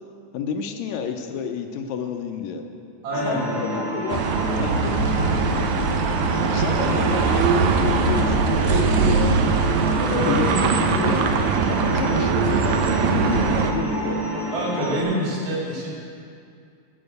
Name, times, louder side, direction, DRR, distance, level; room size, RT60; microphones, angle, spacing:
voice 1, 0.3-2.6 3.2-4.3 4.6-5.0 6.5-9.4 10.3-11.3 11.7-14.2, left 7 dB, 80° left, 5 dB, 1.9 m, -30 dB
voice 2, 3.0-3.8 10.0-10.5 14.5-15.9, equal, 55° right, -5 dB, 3.4 m, -26 dB
sound 1, 3.1-15.0, equal, ahead, 1.2 m, -28 dB
sound 2, 4.1-13.7, right 5 dB, 85° right, 2.0 m, -21 dB
12.5 x 5.7 x 7.9 m, 2.4 s
omnidirectional pair, 3.3 m